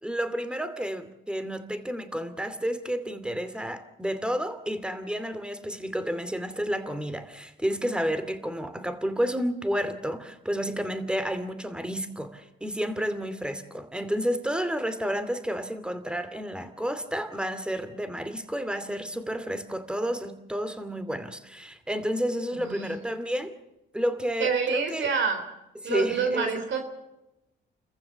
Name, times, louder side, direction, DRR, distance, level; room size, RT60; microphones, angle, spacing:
voice 1, 0.0-23.5 23.9-25.1 25.8-26.5, equal, 5° right, 11 dB, 2.5 m, -31 dB
voice 2, 22.6-22.9 24.4-25.4 25.8-26.8, right 5 dB, 70° right, 6 dB, 3.6 m, -27 dB
29.0 x 15.0 x 7.2 m, 0.93 s
cardioid pair, 90°, 20 cm